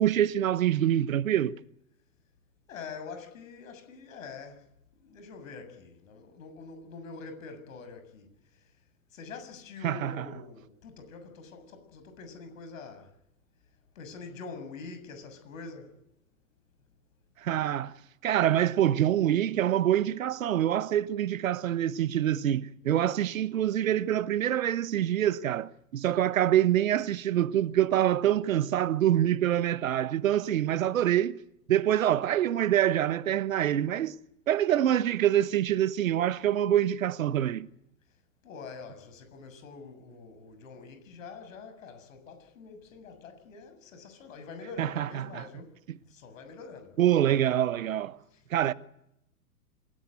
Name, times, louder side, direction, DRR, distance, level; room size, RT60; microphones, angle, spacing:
voice 1, 0.0-1.6 9.8-10.3 17.4-17.9 18.2-31.4 31.7-34.2 34.5-37.7 44.8-45.5 45.9-46.0 47.0-48.2 48.5-48.7, right 11 dB, 65° right, 1.3 m, -25 dB
voice 2, 2.7-4.7 5.0-8.3 9.1-13.1 14.0-15.9 38.4-45.8 46.1-47.0 48.3-48.4, left 4 dB, 60° left, 7.2 m, -45 dB
27.0 x 18.0 x 9.4 m
figure-of-eight pair, 105°, 44 cm